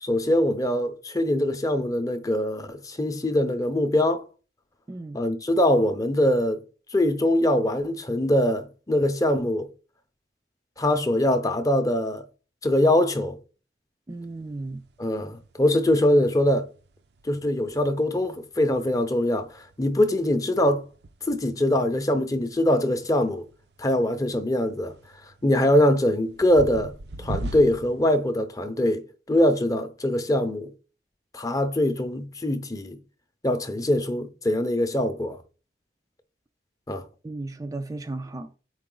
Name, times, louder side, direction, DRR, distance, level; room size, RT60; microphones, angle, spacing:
voice 1, 0.0-4.2 5.1-6.6 6.9-9.7 10.8-12.2 12.6-13.4 15.0-16.7 17.2-19.5 19.8-20.8 21.3-23.5 23.8-24.9 25.4-29.0 29.3-30.7 31.3-33.0 33.4-35.4 36.9-37.0, left 1 dB, 20° left, 0.6 m, -23 dB
voice 2, 4.9-5.2 14.1-14.8 37.2-38.6, right 2 dB, 20° right, 0.3 m, -35 dB
sound 1, 14.1-28.2, right 2 dB, 65° right, 0.5 m, -42 dB
7.4 x 4.8 x 3.8 m
head